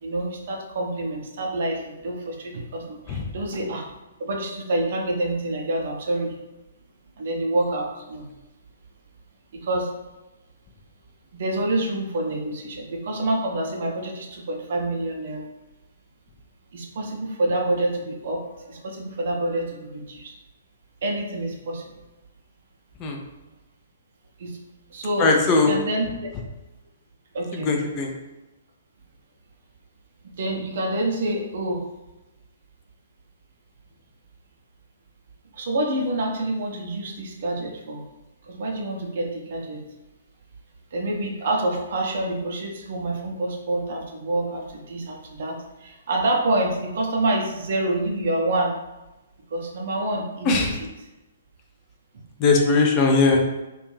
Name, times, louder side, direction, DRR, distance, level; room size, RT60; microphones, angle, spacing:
voice 1, 0.0-3.9 4.2-6.3 7.2-8.3 9.5-9.9 11.3-15.5 16.7-20.3 21.0-21.8 24.4-24.6 24.9-26.1 27.3-27.7 30.2-31.8 35.5-38.0 38.5-39.8 40.9-48.8 49.5-50.9, right 1 dB, 50° right, 0 dB, 0.5 m, -27 dB
voice 2, 25.2-25.7 27.5-28.1 50.4-50.7 52.4-53.4, left 3 dB, 25° left, 2 dB, 0.4 m, -19 dB
2.5 x 2.3 x 3.1 m, 1.0 s
figure-of-eight pair, 120°, 0 cm